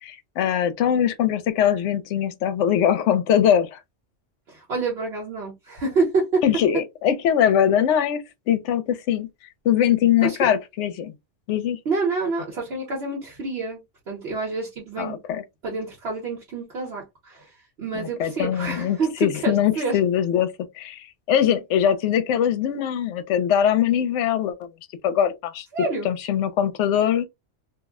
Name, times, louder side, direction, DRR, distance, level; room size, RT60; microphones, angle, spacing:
voice 1, 0.0-3.8 6.4-9.3 9.6-11.1 11.5-11.8 15.0-15.4 17.9-24.7 25.0-25.7 26.0-27.3, left 9 dB, 75° left, 0.9 m, -22 dB
voice 2, 4.5-6.4 10.2-10.4 11.8-15.2 15.6-20.0 25.7-26.1, right 3 dB, 60° right, 1.1 m, -27 dB
2.5 x 2.0 x 3.4 m
omnidirectional pair, 1.3 m